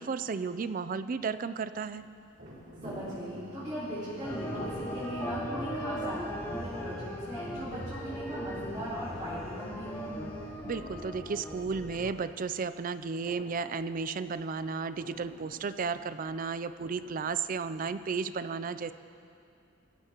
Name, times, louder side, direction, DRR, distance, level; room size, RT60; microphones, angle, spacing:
voice 1, 0.0-2.0 10.6-18.9, right 5 dB, 45° right, 12 dB, 0.4 m, -33 dB
sound 1, 1.9-18.1, equal, 60° right, 2.9 m, -52 dB
voice 2, 2.8-10.1, equal, 20° right, -13 dB, 3.5 m, -38 dB
sound 2, 3.1-10.7, left 2 dB, 85° left, 1.6 m, -50 dB
sound 3, 4.2-12.1, equal, 10° left, 1.0 m, -39 dB
23.0 x 14.0 x 3.0 m, 2.5 s
head